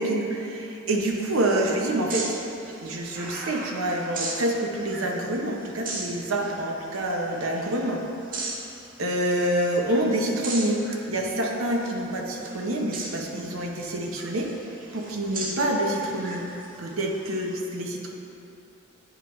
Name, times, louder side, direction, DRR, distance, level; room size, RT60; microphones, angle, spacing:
voice 1, 0.0-2.2 2.8-8.0 9.0-14.5 14.9-16.5 16.8-18.1, right 1 dB, 75° right, 1 dB, 0.8 m, -27 dB
sound 1, 1.0-17.6, right 2 dB, 45° right, 0.8 m, -39 dB
9.0 x 4.5 x 3.1 m, 2.8 s
head